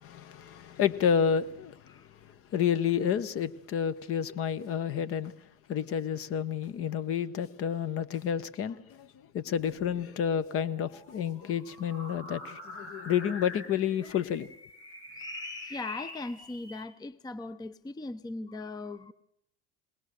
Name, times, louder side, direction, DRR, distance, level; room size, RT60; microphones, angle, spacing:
voice 1, 0.0-2.0 2.5-5.3 5.7-9.1 9.3-14.5, left 8 dB, 45° left, 1.1 m, -30 dB
voice 2, 1.9-2.4 12.0-12.5 12.7-12.9 15.1-19.1, left 3 dB, 10° left, 0.7 m, -40 dB
sound 1, 9.4-16.8, left 1 dB, 90° left, 4.7 m, -45 dB
21.0 x 19.0 x 6.7 m
hypercardioid pair, 90°, 32 cm